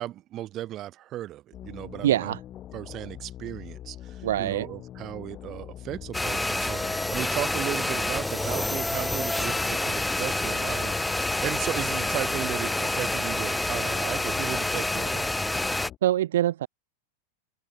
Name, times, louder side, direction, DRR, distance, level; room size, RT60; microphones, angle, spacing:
voice 1, 0.0-2.3 2.7-11.0 11.4-15.4, right 14 dB, 35° right, 1.9 m, -35 dB
sound 1, 1.5-16.0, left 12 dB, 30° left, 1.5 m, -43 dB
voice 2, 2.0-2.4 4.2-4.7 16.0-16.7, right 12 dB, 60° right, 0.5 m, -24 dB
sound 2, 6.1-15.9, left 2 dB, 5° left, 0.7 m, -28 dB
open air
figure-of-eight pair, 90°, 0 cm